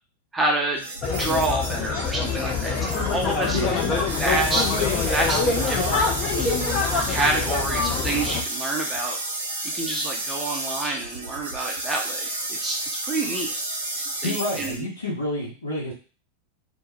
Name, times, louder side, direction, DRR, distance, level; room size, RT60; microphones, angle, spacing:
voice 1, 0.3-3.6 4.2-4.6 5.1-6.5 7.1-9.2 9.7-12.8 13.0-13.5 14.2-14.9, right 2 dB, 10° right, 0 dB, 0.6 m, -28 dB
sound 1, 0.7-14.8, right 2 dB, 70° right, 0.5 m, -31 dB
sound 2, 1.0-8.4, left 5 dB, 30° left, 0.5 m, -25 dB
voice 2, 14.2-15.9, left 1 dB, 80° left, -5 dB, 0.7 m, -28 dB
2.2 x 2.0 x 3.0 m, 0.35 s
figure-of-eight pair, 90°, 0 cm